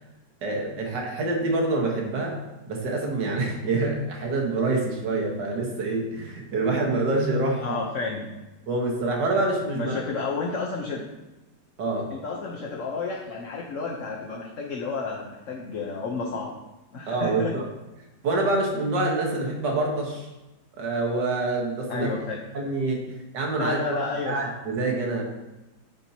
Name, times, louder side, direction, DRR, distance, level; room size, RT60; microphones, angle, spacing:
voice 1, 0.4-2.4 2.7-7.8 8.7-10.0 11.8-12.1 17.1-17.7 18.2-20.3 20.8-22.1 22.5-23.0 23.3-25.2, right 2 dB, 70° right, 0 dB, 1.9 m, -26 dB
voice 2, 7.6-8.3 9.7-11.0 12.1-16.5 16.9-17.5 21.9-22.4 23.6-24.4, left 4 dB, 55° left, -1 dB, 1.0 m, -31 dB
11.5 x 4.5 x 2.8 m, 1.0 s
omnidirectional pair, 1.9 m